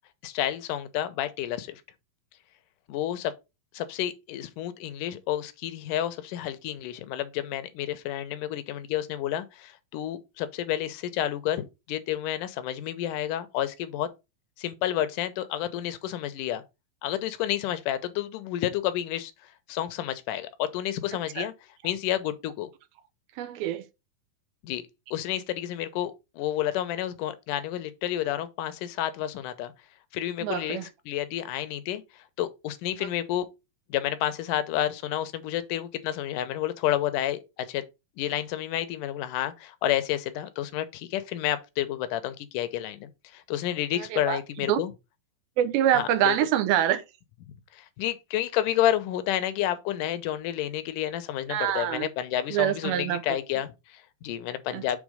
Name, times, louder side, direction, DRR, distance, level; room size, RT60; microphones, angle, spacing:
voice 1, 0.2-1.8 2.9-3.3 3.7-14.1 14.6-16.6 17.0-21.5 21.8-22.7 24.6-24.8 25.1-29.7 30.1-33.5 33.9-37.8 38.2-44.9 45.9-46.4 47.5-55.0, left 12 dB, 75° left, 2.1 m, -30 dB
voice 2, 23.4-23.8 30.4-30.8 44.1-44.4 44.7-44.8 45.6-47.0 51.5-52.1 52.5-53.2 54.7-54.8, right 11 dB, 85° right, 2.7 m, -25 dB
7.4 x 3.4 x 4.9 m
omnidirectional pair, 4.2 m